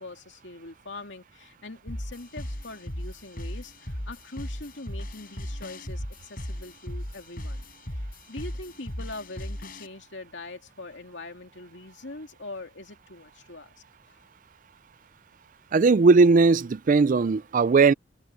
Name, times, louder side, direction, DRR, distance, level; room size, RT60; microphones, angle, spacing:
voice 1, 0.0-13.7 14.1-14.2, left 2 dB, 65° left, 2.7 m, -42 dB
sound 1, 1.9-9.9, equal, 50° left, 5.6 m, -37 dB
voice 2, 15.7-17.9, right 4 dB, 40° right, 0.4 m, -18 dB
head